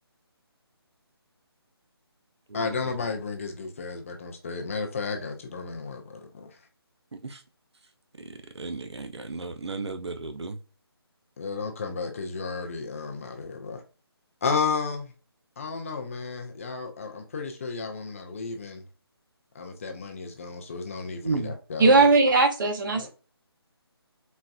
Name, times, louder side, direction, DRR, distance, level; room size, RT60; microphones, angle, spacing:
voice 1, 2.5-6.6 11.4-13.8 14.4-15.1 15.6-18.8 19.5-22.1 22.9-23.1, left 4 dB, 30° left, 0.5 m, -33 dB
voice 2, 8.2-10.6 21.2-21.5, right 3 dB, 90° right, 0.5 m, -34 dB
voice 3, 21.8-23.1, right 3 dB, 50° right, 0.8 m, -19 dB
4.1 x 2.2 x 2.2 m
figure-of-eight pair, 155°, 14 cm